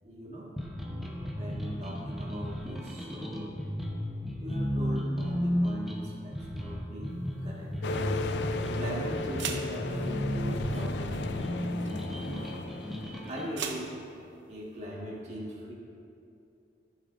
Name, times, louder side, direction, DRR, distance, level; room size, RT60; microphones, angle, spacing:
voice 1, 0.0-0.6 1.4-3.6 4.4-7.1 7.4-8.2 8.7-12.6 13.3-14.0 14.5-15.7, right 1 dB, 35° right, -5 dB, 1.8 m, -41 dB
sound 1, 0.6-13.5, equal, ahead, 0.8 m, -34 dB
sound 2, 7.1-14.8, right 6 dB, 75° right, 0.7 m, -44 dB
sound 3, 7.8-13.4, left 3 dB, 65° left, 0.4 m, -36 dB
14.5 x 7.0 x 2.6 m, 2.6 s
head